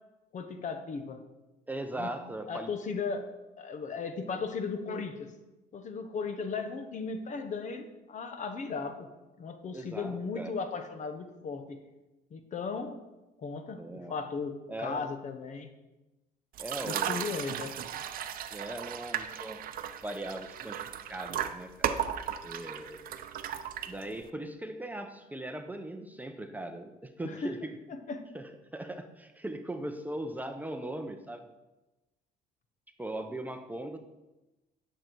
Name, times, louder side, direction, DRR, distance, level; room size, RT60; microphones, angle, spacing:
voice 1, 0.3-1.2 1.9-2.1 2.5-3.3 3.6-5.3 5.7-9.1 9.4-11.8 12.3-13.0 13.4-15.7 16.8-17.7 27.2-27.6 27.9-28.2, left 4 dB, 45° left, 8 dB, 1.0 m, -36 dB
voice 2, 1.7-2.7 4.2-4.4 9.7-10.6 13.7-14.1 14.7-15.1 16.6-17.3 18.5-19.6 20.0-21.9 22.4-23.1 23.8-27.8 28.3-31.5 33.0-34.0, right 1 dB, 10° right, 6 dB, 0.7 m, -39 dB
sound 1, 16.5-24.3, right 9 dB, 60° right, 0.6 m, -36 dB
10.0 x 6.8 x 4.6 m, 1.0 s
cardioid pair, 110°, 17 cm